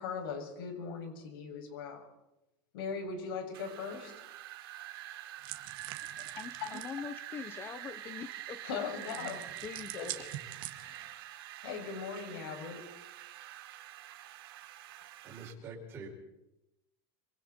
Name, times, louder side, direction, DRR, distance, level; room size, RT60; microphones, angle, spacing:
voice 1, 0.0-2.1 2.7-4.2 6.6-6.8 8.6-9.5 9.9-10.1 10.8-11.1 11.6-12.8, left 5 dB, 70° left, 3 dB, 7.1 m, -39 dB
Wind, 3.5-15.5, right 13 dB, 80° right, 3.7 m, -46 dB
sound 1, 5.4-7.0 9.0-11.1, right 14 dB, 40° right, 1.9 m, -45 dB
voice 2, 6.4-8.7 9.6-10.3, left 7 dB, 20° left, 13 dB, 0.7 m, -43 dB
voice 3, 15.2-16.1, right 3 dB, 20° right, -4 dB, 5.6 m, -45 dB
27.5 x 26.0 x 4.4 m, 0.93 s
supercardioid pair, 175°, 12 cm